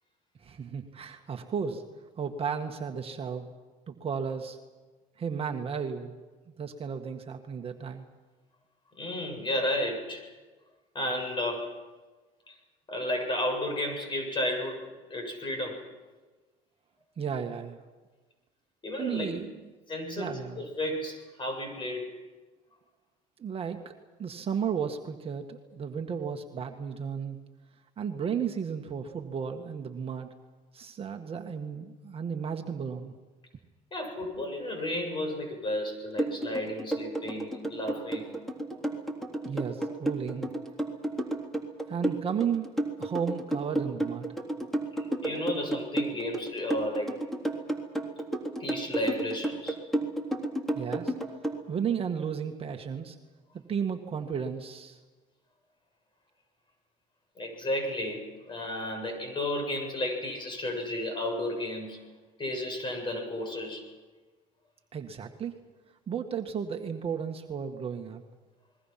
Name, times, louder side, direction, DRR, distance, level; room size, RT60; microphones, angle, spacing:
voice 1, 0.4-1.8 2.2-3.5 3.9-4.6 5.2-6.2 6.6-8.0 17.2-17.8 19.0-19.7 20.1-20.7 23.4-23.9 24.2-27.4 28.0-30.3 30.7-33.1 39.4-40.5 41.9-42.7 43.0-44.4 50.7-51.1 51.7-53.2 53.5-55.0 64.9-65.6 66.1-68.2, right 7 dB, 35° right, 4 dB, 1.8 m, -34 dB
voice 2, 9.0-10.2 10.9-11.7 12.5-12.6 12.9-14.8 15.1-15.8 18.8-19.4 19.9-22.1 33.9-38.4 39.8-39.9 45.2-47.1 48.6-49.8 57.4-62.0 62.4-63.8, left 1 dB, 30° left, 4 dB, 7.6 m, -33 dB
sound 1, 36.2-51.6, right 1 dB, ahead, 3.6 m, -31 dB
29.0 x 21.5 x 6.0 m, 1.3 s
supercardioid pair, 90°, 16 cm